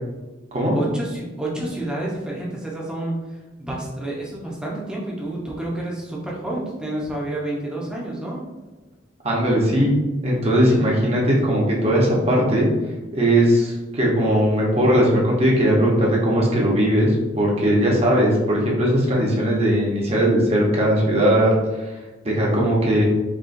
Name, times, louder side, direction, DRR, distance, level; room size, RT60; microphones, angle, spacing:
voice 1, 0.7-8.4, right 1 dB, 5° right, -4 dB, 0.7 m, -29 dB
voice 2, 9.2-9.9 10.2-12.7 13.1-21.5 21.9-22.0 22.2-23.0, equal, 30° right, -3 dB, 0.9 m, -19 dB
4.5 x 3.0 x 2.6 m, 1.2 s
head